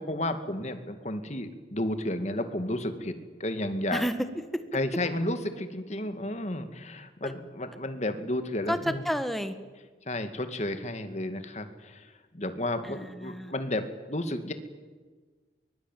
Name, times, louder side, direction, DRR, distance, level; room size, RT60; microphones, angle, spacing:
voice 1, 0.0-4.1 4.7-9.0 10.1-14.5, left 1 dB, 40° left, 8 dB, 2.2 m, -32 dB
voice 2, 3.9-4.6 7.2-7.3 8.7-9.6 12.8-13.5, equal, ahead, 9 dB, 1.5 m, -31 dB
23.5 x 22.0 x 9.2 m, 1.4 s
head